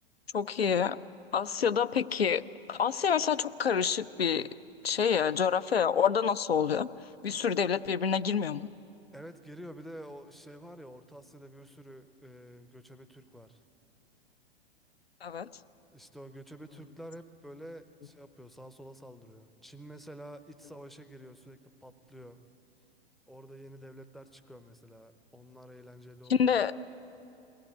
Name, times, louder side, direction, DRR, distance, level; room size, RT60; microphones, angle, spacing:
voice 1, 0.3-1.0 1.3-2.4 2.7-4.5 4.8-6.9 7.2-8.7 15.2-15.5 26.3-26.7, left 7 dB, 75° left, 14 dB, 0.6 m, -27 dB
voice 2, 9.1-13.6 15.9-22.4 23.3-26.5, equal, ahead, 9 dB, 0.6 m, -49 dB
22.0 x 17.5 x 8.8 m, 2.7 s
figure-of-eight pair, 100°, 31 cm